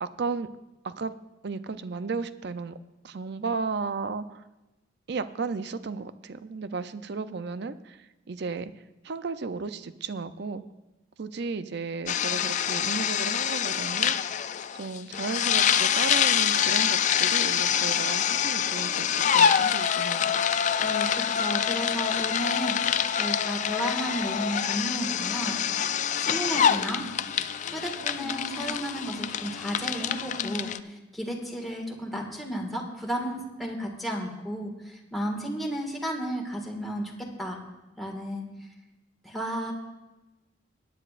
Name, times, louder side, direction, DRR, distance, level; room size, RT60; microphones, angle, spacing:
voice 1, 0.0-0.5 0.8-1.1 1.4-2.8 3.0-4.4 5.1-8.7 9.0-10.6 11.2-14.2 14.7-20.3, right 4 dB, 60° right, 12 dB, 0.5 m, -34 dB
sound 1, 12.1-30.8, left 8 dB, 40° left, 0.3 m, -26 dB
voice 2, 20.8-27.0 27.7-37.6 38.0-38.5 39.2-39.7, equal, ahead, -1 dB, 1.8 m, -33 dB
20.0 x 9.9 x 2.5 m, 1.0 s
head